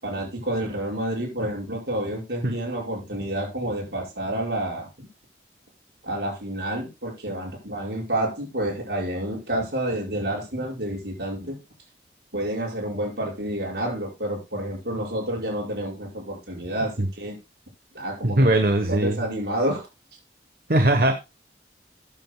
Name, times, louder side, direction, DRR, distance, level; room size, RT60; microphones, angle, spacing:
voice 1, 0.0-5.1 6.0-11.6 12.3-17.4 17.9-18.6 18.9-19.8, right 1 dB, 75° right, -2 dB, 5.8 m, -29 dB
voice 2, 18.2-19.2 20.7-21.1, right 1 dB, 55° right, 7 dB, 1.1 m, -20 dB
14.5 x 9.0 x 2.3 m, 0.25 s
head